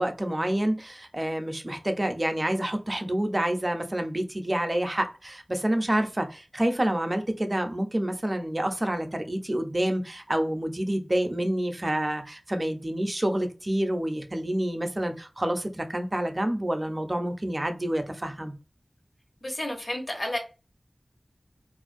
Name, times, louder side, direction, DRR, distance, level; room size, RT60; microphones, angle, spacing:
voice 1, 0.0-18.5, right 1 dB, 35° right, 0.5 m, -28 dB
voice 2, 19.4-20.4, left 1 dB, 50° left, 0.8 m, -31 dB
2.5 x 2.2 x 2.5 m
wide cardioid pair, 50°, 0 cm